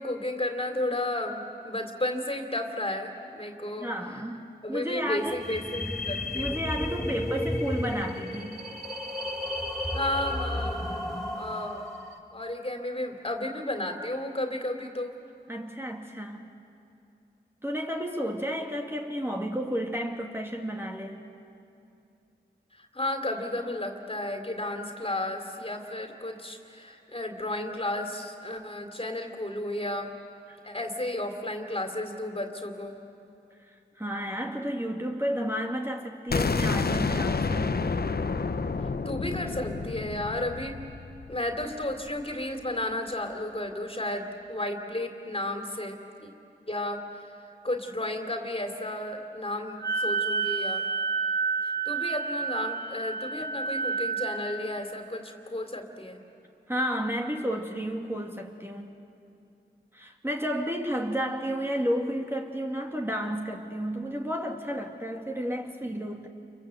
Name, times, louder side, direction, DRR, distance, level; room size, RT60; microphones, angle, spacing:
voice 1, 0.0-3.9 4.6-6.6 9.9-11.0 11.3-11.8 12.3-15.1 22.7-30.1 30.6-33.0 39.0-40.8 41.3-46.3 46.7-50.8 51.6-56.2, left 1 dB, 30° left, 5 dB, 3.2 m, -33 dB
voice 2, 3.8-5.4 6.3-8.6 15.5-16.6 17.6-21.2 30.5-30.6 33.7-37.7 56.7-58.9 59.9-66.3, equal, 10° right, 1 dB, 2.3 m, -32 dB
sound 1, 5.2-12.2, left 1 dB, 5° left, 4.2 m, -33 dB
sound 2, 36.3-42.1, left 4 dB, 60° left, 1.1 m, -29 dB
Wind instrument woodwind instrument, 49.8-54.5, right 4 dB, 85° right, 2.2 m, -29 dB
29.0 x 24.0 x 7.9 m, 2.6 s
cardioid pair, 40°, 18 cm